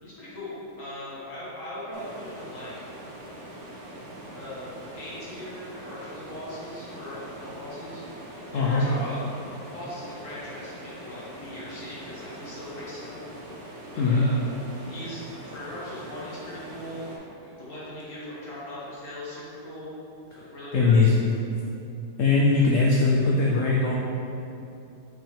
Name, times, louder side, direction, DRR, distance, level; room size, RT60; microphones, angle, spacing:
voice 1, 0.0-2.7 4.3-4.7 4.9-8.0 8.5-9.2 9.7-13.2 13.9-14.4 14.9-17.3 17.6-19.9 20.4-21.0, left 1 dB, 45° left, -9 dB, 2.0 m, -39 dB
sound 1, 1.9-17.2, right 1 dB, 55° right, 1.3 m, -43 dB
voice 2, 20.7-21.1 22.2-23.9, left 4 dB, 75° left, -3 dB, 0.7 m, -20 dB
5.7 x 5.6 x 3.4 m, 2.8 s
omnidirectional pair, 2.0 m